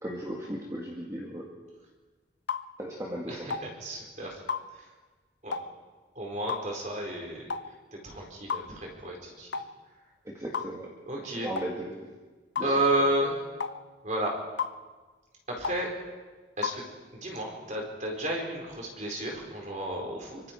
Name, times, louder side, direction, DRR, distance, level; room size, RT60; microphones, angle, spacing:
voice 1, 0.0-1.5 2.8-3.5 10.3-10.9 11.3-12.1 12.6-12.7, right 1 dB, 20° right, -3 dB, 2.1 m, -36 dB
sound 1, 2.5-2.7 3.5-3.7 4.5-4.7 5.5-5.7 6.5-6.7 7.5-7.7 8.5-8.7 9.5-9.7 10.5-10.7 11.6-11.7 12.6-12.7 13.6-13.8 14.6-14.8 15.6-15.8 16.6-16.8, left 5 dB, 75° left, 0.7 m, -32 dB
voice 2, 3.3-4.4 4.7-4.8 5.4-5.5 6.1-7.5 7.9-9.5 11.1-11.5 12.6-13.4 14.0-14.3 15.5-15.9 16.6-16.8 17.2-20.4, right 1 dB, 40° right, 0 dB, 4.3 m, -31 dB
25.0 x 24.0 x 4.5 m, 1.3 s
head